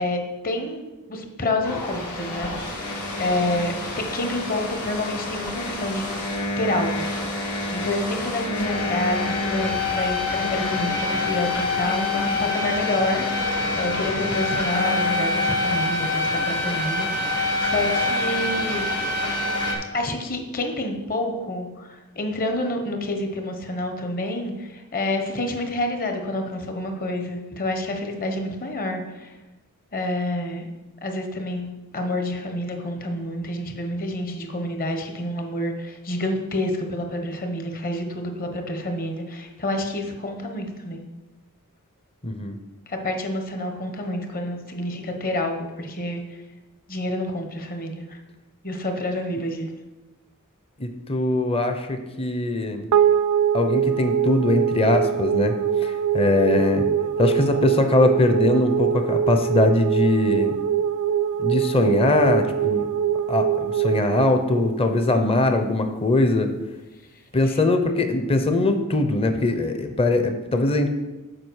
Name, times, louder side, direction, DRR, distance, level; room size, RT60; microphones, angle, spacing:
voice 1, 0.0-6.1 6.6-7.1 7.7-18.9 19.9-29.3 29.9-30.6 31.0-31.7 31.9-41.0 42.9-46.2 46.9-48.2 48.6-49.7 67.4-67.6, left 1 dB, 40° left, 5 dB, 1.2 m, -28 dB
sound 1, 1.6-19.7, left 2 dB, 80° left, 2.6 m, -26 dB
voice 2, 42.2-42.6 50.8-52.9 53.5-56.9 57.2-60.6 61.4-62.9 63.3-66.5 67.3-70.9, left 2 dB, 25° left, 7 dB, 0.7 m, -21 dB
sound 2, 52.9-65.4, right 9 dB, 75° right, 0.3 m, -23 dB
7.6 x 5.0 x 6.3 m, 1.1 s
head